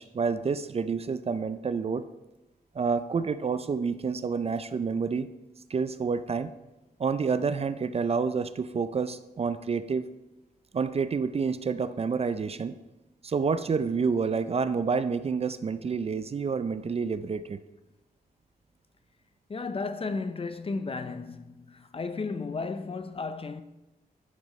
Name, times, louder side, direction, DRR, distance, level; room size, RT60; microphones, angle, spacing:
voice 1, 0.0-2.0 2.7-5.3 5.7-6.5 7.0-10.1 10.7-12.7 13.2-17.6, right 5 dB, 40° right, 0.4 m, -28 dB
voice 2, 19.5-23.6, left 4 dB, 35° left, 0.6 m, -34 dB
10.5 x 8.0 x 3.2 m
wide cardioid pair, 100°, 16 cm